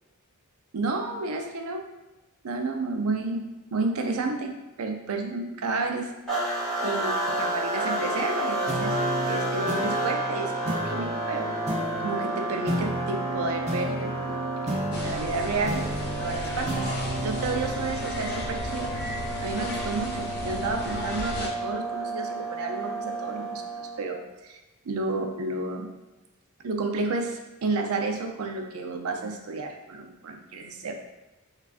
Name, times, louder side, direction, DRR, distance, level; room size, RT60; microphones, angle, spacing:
voice 1, 0.7-1.8 2.4-6.1 6.8-9.0 9.2-11.6 12.0-14.3 14.9-15.9 16.2-16.9 17.2-18.9 19.4-24.6 24.8-25.9 26.6-30.9, right 3 dB, 85° right, 4 dB, 0.5 m, -31 dB
sound 1, 6.3-24.1, right 2 dB, 5° left, 1.3 m, -31 dB
sound 2, 8.7-19.5, right 1 dB, 30° right, 0.6 m, -34 dB
sound 3, 14.9-21.5, left 2 dB, 50° left, 0.6 m, -35 dB
4.7 x 2.4 x 2.4 m, 1.1 s
head